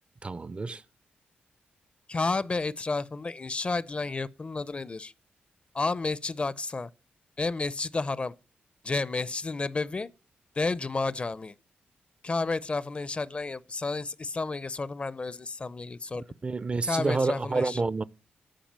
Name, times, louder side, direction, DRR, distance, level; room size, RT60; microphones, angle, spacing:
voice 1, 0.2-0.8 16.4-18.0, right 3 dB, 30° right, 0.4 m, -28 dB
voice 2, 2.1-5.1 5.7-6.9 7.4-8.3 8.8-10.1 10.6-11.5 12.2-16.3 16.8-17.8, left 3 dB, 35° left, 0.5 m, -31 dB
10.0 x 4.9 x 7.4 m
cardioid pair, 80°, 4 cm